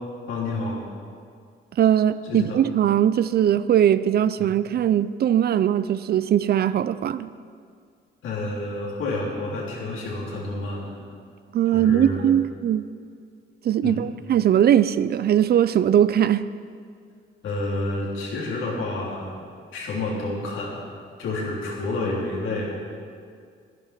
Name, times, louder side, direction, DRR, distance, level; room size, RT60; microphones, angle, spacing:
voice 1, 0.3-0.8 2.2-2.6 4.4-4.5 8.2-11.0 11.7-12.3 13.8-14.0 17.4-19.3 19.7-20.8 21.2-22.8, left 2 dB, 80° left, -4 dB, 3.7 m, -29 dB
voice 2, 1.8-7.3 11.5-12.8 13.6-16.5, right 10 dB, 50° right, 15 dB, 0.5 m, -20 dB
11.0 x 10.5 x 6.1 m, 2.2 s
cardioid pair, 90°, 20 cm